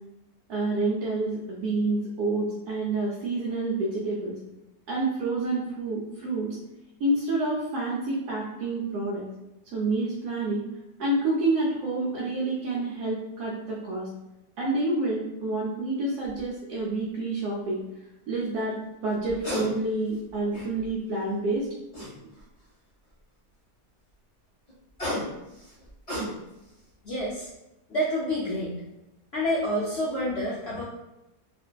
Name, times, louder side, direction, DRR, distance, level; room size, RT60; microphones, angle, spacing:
voice 1, 0.5-4.3 4.9-6.6 7.0-9.3 9.7-10.6 11.0-14.1 14.6-17.8 18.3-18.8 19.0-21.7, right 2 dB, 75° right, -5 dB, 1.1 m, -28 dB
sound 1, 16.2-16.4 19.2-19.7 20.1-20.9 21.9-22.6 24.7-26.7 27.2-27.4, equal, 30° left, 0.8 m, -34 dB
voice 2, 27.0-27.5 27.9-28.8 29.3-30.8, equal, 70° left, -8 dB, 0.6 m, -28 dB
2.5 x 2.5 x 2.2 m, 0.93 s
omnidirectional pair, 1.7 m